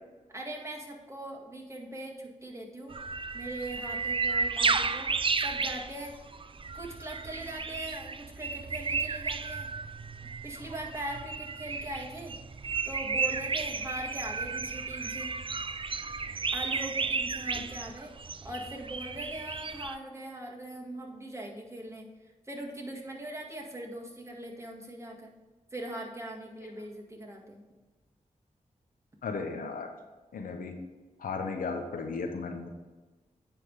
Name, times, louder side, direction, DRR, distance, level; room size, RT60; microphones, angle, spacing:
voice 1, 0.3-3.0 3.3-6.1 6.7-9.7 10.2-12.4 12.8-15.3 16.5-18.1 18.4-25.3 25.7-27.6, right 1 dB, 20° right, -1 dB, 2.0 m, -41 dB
sound 1, 2.9-20.0, right 4 dB, 40° right, 0.5 m, -33 dB
voice 2, 29.2-29.9 30.3-30.7 31.2-32.7, left 4 dB, 85° left, 5 dB, 0.9 m, -35 dB
9.8 x 3.6 x 4.8 m, 1.2 s
cardioid pair, 45°, 14 cm